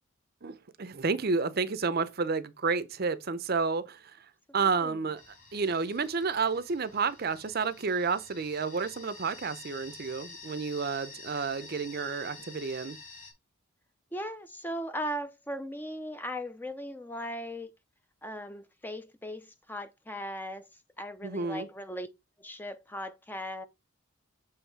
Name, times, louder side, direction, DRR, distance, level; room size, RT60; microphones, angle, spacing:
voice 1, 0.4-4.0 4.5-5.2 5.5-13.0 21.2-21.7, right 4 dB, 50° right, 0.6 m, -30 dB
voice 2, 4.6-5.0 14.1-17.7 18.2-20.7 21.0-22.1 22.4-23.6, equal, 10° left, 0.5 m, -38 dB
sound 1, 5.2-13.3, left 3 dB, 35° left, 2.6 m, -49 dB
7.2 x 3.2 x 4.6 m
head